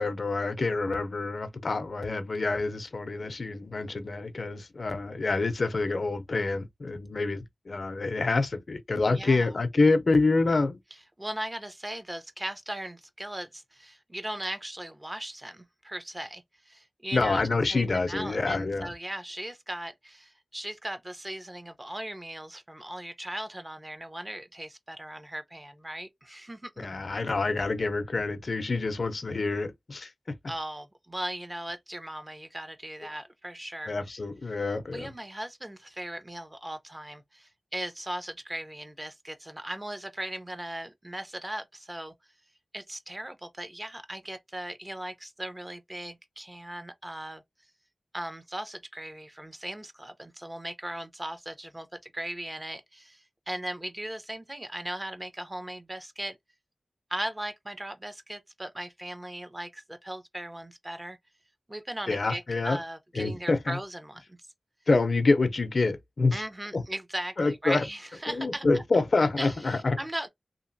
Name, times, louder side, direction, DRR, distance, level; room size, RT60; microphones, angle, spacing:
voice 1, 0.0-10.8 17.1-18.9 26.8-30.3 33.9-35.1 62.1-62.8 63.2-63.8 64.9-66.4 66.7-66.8 67.4-67.8 68.3-70.0, left 3 dB, 70° left, 0.5 m, -27 dB
voice 2, 9.1-9.5 11.2-17.4 17.7-26.9 30.5-33.9 34.9-42.1 42.7-47.4 48.1-56.4 57.1-61.2 61.7-64.4 66.3-68.8 69.4-70.3, right 1 dB, 25° right, 0.6 m, -38 dB
2.8 x 2.5 x 2.6 m
cardioid pair, 45°, 0 cm